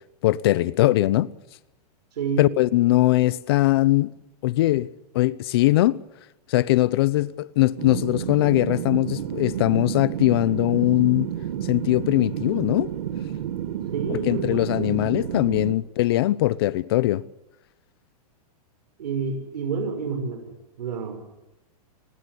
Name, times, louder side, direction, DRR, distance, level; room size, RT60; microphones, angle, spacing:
voice 1, 0.2-1.3 2.4-4.1 4.4-4.9 5.1-6.0 6.5-11.3 11.7-12.9 14.1-17.2, left 16 dB, 40° left, 0.9 m, -21 dB
voice 2, 2.1-2.5 13.9-14.9 19.0-20.5 20.8-21.2, right 5 dB, 85° right, 7.0 m, -29 dB
sound 1, 7.8-15.7, right 10 dB, 65° right, 2.3 m, -30 dB
29.5 x 20.5 x 8.3 m
supercardioid pair, 175°, 20 cm